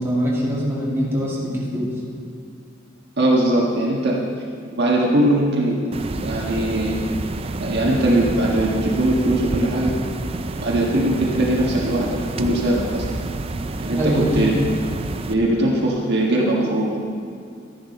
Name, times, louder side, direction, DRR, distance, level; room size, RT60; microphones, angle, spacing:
voice 1, 0.0-1.9 14.0-14.5, equal, 10° right, -6 dB, 2.4 m, -23 dB
voice 2, 3.2-4.2 4.6-7.0 7.6-9.9 10.6-13.1 13.8-14.5 15.3-17.0, right 1 dB, 55° right, -3 dB, 1.4 m, -20 dB
sound 1, 5.9-15.3, right 2 dB, 30° right, 0.4 m, -29 dB
12.5 x 10.5 x 4.2 m, 2.4 s
head